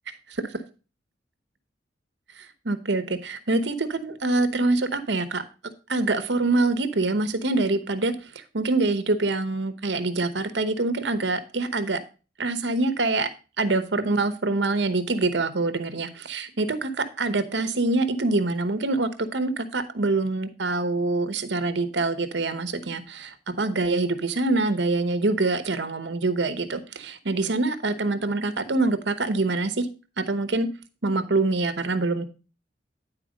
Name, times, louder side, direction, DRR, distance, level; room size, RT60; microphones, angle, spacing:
voice 1, 2.4-5.4 5.9-12.0 12.4-13.3 13.6-29.9 30.2-30.7 31.0-32.2, right 2 dB, 70° right, 10 dB, 0.9 m, -25 dB
10.0 x 4.5 x 5.1 m, 0.33 s
head